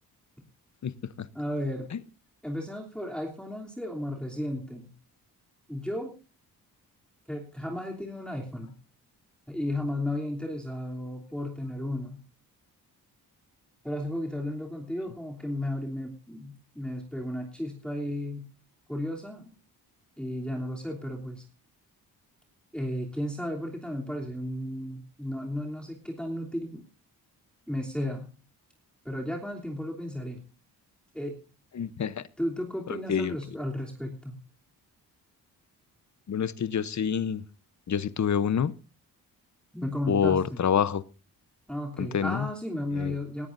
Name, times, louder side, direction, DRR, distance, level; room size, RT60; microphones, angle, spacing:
voice 1, 0.8-1.3 1.9-2.0 31.7-32.2 32.9-33.4 36.3-37.4 37.9-38.7 40.1-41.0 42.0-42.5 42.9-43.2, left 8 dB, 50° left, 17 dB, 0.9 m, -27 dB
voice 2, 1.3-1.9 2.4-4.9 5.7-6.2 7.3-8.7 9.5-12.2 13.8-18.5 18.9-19.4 20.2-21.4 22.7-26.8 27.7-28.3 29.0-30.4 31.1-31.4 32.4-34.4 39.7-40.6 41.7-43.5, left 1 dB, ahead, -2 dB, 3.2 m, -34 dB
18.5 x 13.5 x 2.6 m, 0.35 s
cardioid pair, 70°, 38 cm